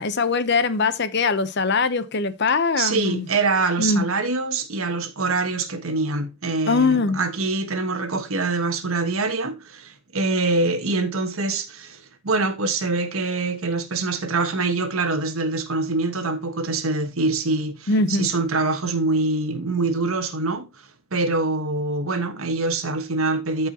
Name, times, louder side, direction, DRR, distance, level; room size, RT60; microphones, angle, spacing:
voice 1, 0.0-3.3 3.8-4.0 6.7-7.2 17.9-18.3, left 4 dB, 50° left, 0.8 m, -21 dB
voice 2, 2.8-20.7 21.1-23.7, right 3 dB, 75° right, 1.3 m, -24 dB
14.0 x 4.9 x 2.8 m
head